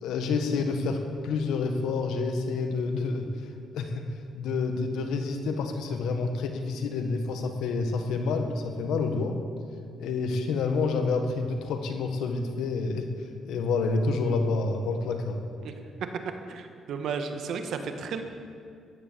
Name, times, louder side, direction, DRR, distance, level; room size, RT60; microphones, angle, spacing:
voice 1, 0.0-4.1 4.4-9.4 10.0-13.1 13.4-15.4, left 4 dB, 85° left, 6 dB, 1.5 m, -28 dB
voice 2, 16.5-18.2, right 5 dB, 70° right, 6 dB, 1.4 m, -33 dB
14.5 x 11.0 x 6.9 m, 2.3 s
cardioid pair, 90°, 0 cm